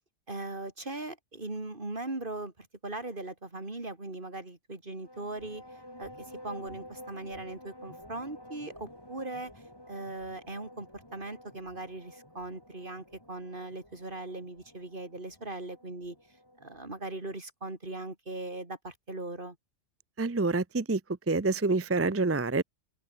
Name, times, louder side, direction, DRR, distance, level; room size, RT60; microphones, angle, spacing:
voice 1, 0.3-5.6 6.0-16.2 16.6-19.6, right 2 dB, 45° right, 3.9 m, -39 dB
sound 1, 4.9-16.8, left 1 dB, 20° left, 5.7 m, -51 dB
voice 2, 20.2-21.0 21.3-22.6, right 3 dB, 20° right, 0.3 m, -27 dB
open air
omnidirectional pair, 1.3 m